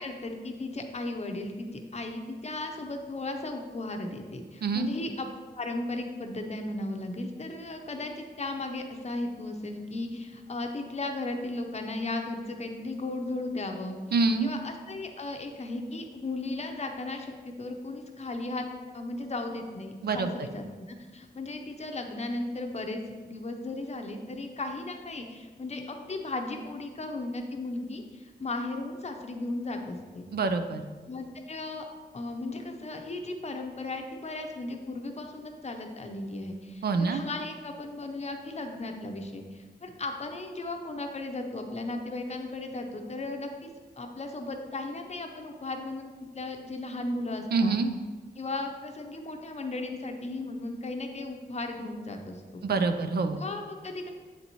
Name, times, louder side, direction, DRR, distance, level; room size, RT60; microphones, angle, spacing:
voice 1, 0.0-5.3 5.5-14.0 14.4-18.7 18.9-30.3 31.1-31.9 32.1-43.7 44.0-47.8 48.4-52.7 53.4-54.1, left 2 dB, 40° left, 4 dB, 0.6 m, -36 dB
voice 2, 14.1-14.5 20.0-20.3 30.3-30.8 36.8-37.2 47.5-47.9 52.6-53.4, right 4 dB, 65° right, 7 dB, 0.4 m, -26 dB
8.0 x 4.1 x 3.0 m, 1.4 s
wide cardioid pair, 115°, 18 cm